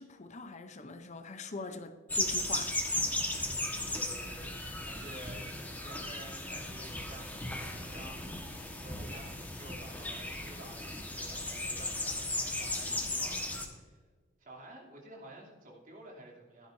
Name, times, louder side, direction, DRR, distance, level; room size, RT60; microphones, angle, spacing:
voice 1, 0.0-2.8, left 3 dB, 35° left, 0.7 m, -43 dB
sound 1, 2.1-13.7, left 2 dB, 10° left, 1.3 m, -36 dB
voice 2, 3.3-8.4 8.6-14.0 14.4-16.7, right 1 dB, 45° right, 2.9 m, -51 dB
15.5 x 11.0 x 2.7 m
head